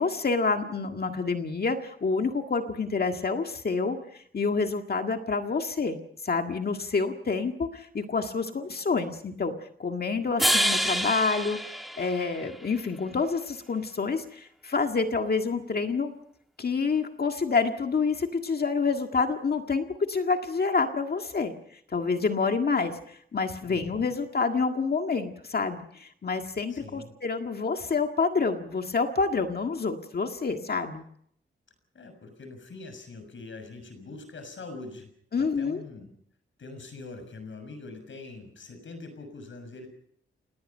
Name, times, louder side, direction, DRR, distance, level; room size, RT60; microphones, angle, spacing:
voice 1, 0.0-6.0 6.2-9.5 9.8-11.6 12.0-16.1 16.6-21.5 21.9-31.0 35.3-35.8, left 4 dB, 50° left, 5 dB, 1.8 m, -28 dB
sound 1, 10.4-12.7, equal, ahead, 2.8 m, -27 dB
voice 2, 23.6-24.1 26.7-27.1 31.9-35.1 35.4-36.1 36.6-39.9, left 3 dB, 65° left, 8 dB, 6.6 m, -43 dB
28.0 x 19.5 x 5.6 m, 0.67 s
wide cardioid pair, 125°, 21 cm